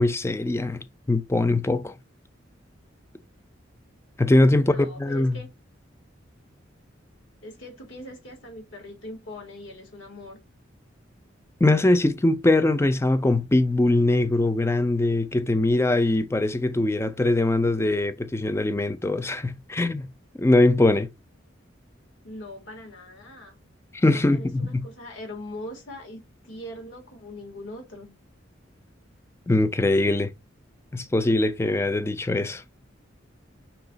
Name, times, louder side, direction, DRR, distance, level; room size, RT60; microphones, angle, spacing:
voice 1, 0.0-1.9 4.2-5.4 11.6-20.1 20.4-21.1 23.9-24.8 29.5-30.3 30.9-32.6, left 2 dB, 15° left, 0.4 m, -22 dB
voice 2, 4.5-5.5 7.4-10.4 22.2-23.6 24.1-28.1, left 1 dB, 70° left, 1.8 m, -41 dB
5.6 x 2.4 x 3.9 m
head